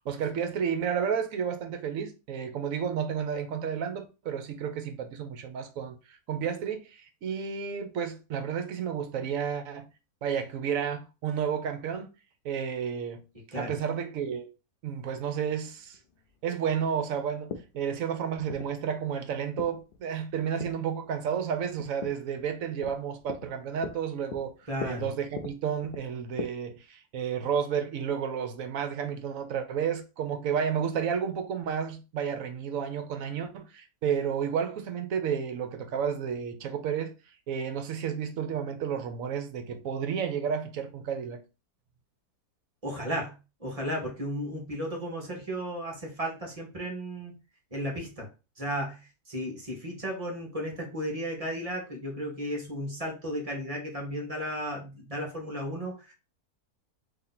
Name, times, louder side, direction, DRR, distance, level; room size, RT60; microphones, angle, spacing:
voice 1, 0.1-9.9 10.2-12.1 12.4-13.2 13.6-14.5 14.8-16.0 16.4-24.5 24.8-37.1 37.5-41.4, right 7 dB, 65° right, 1.0 m, -31 dB
sound 1, 15.5-26.5, left 6 dB, 80° left, 0.5 m, -43 dB
voice 2, 24.7-25.1 42.8-43.3 43.6-47.4 47.7-48.3 48.6-49.0 49.3-56.1, equal, 25° right, 1.0 m, -34 dB
3.0 x 2.8 x 3.9 m
omnidirectional pair, 1.7 m